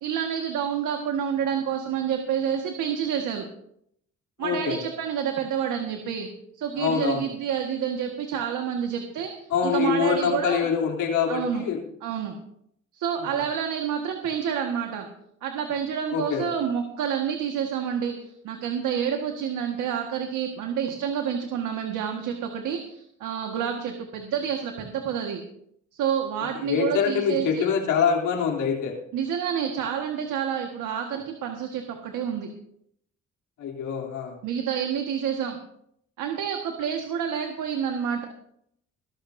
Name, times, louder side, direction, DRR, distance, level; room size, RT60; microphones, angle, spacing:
voice 1, 0.0-3.4 4.4-6.3 6.6-9.3 9.6-10.7 11.3-11.6 12.0-12.3 12.9-15.1 15.4-25.4 25.9-27.7 29.1-32.5 34.4-35.6 36.2-38.2, right 8 dB, 85° right, 3 dB, 1.7 m, -28 dB
voice 2, 4.4-4.8 6.8-7.2 9.5-11.8 16.1-16.4 26.6-28.9 33.6-34.4, left 7 dB, 85° left, -1 dB, 3.3 m, -25 dB
21.5 x 13.5 x 2.7 m, 0.70 s
cardioid pair, 90°, 30 cm